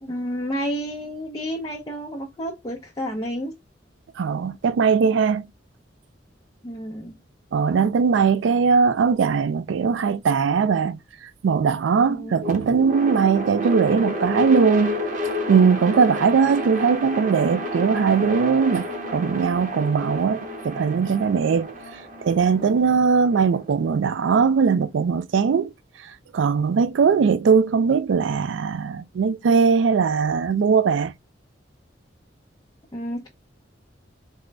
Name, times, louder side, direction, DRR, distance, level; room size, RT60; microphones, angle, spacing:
voice 1, 0.0-3.5 6.6-7.2 12.1-12.4 32.9-33.3, equal, 20° left, 0.6 m, -30 dB
voice 2, 4.2-5.5 7.5-11.0 11.4-15.0 15.5-18.9 19.1-21.7 22.2-25.7 26.3-31.1, right 5 dB, 90° right, 0.4 m, -20 dB
sound 1, 12.4-24.5, left 1 dB, 45° right, 0.8 m, -31 dB
3.7 x 2.1 x 3.2 m
head